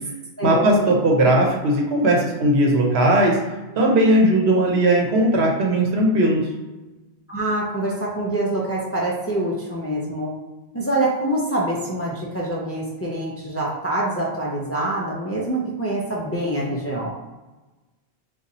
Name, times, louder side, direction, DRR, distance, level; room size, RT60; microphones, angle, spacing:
voice 1, 0.4-3.4 3.8-6.5, right 1 dB, 80° right, -1 dB, 1.1 m, -18 dB
voice 2, 7.3-10.3 10.7-17.1, right 1 dB, 20° left, -4 dB, 0.4 m, -25 dB
2.6 x 2.5 x 4.1 m, 1.1 s
omnidirectional pair, 1.1 m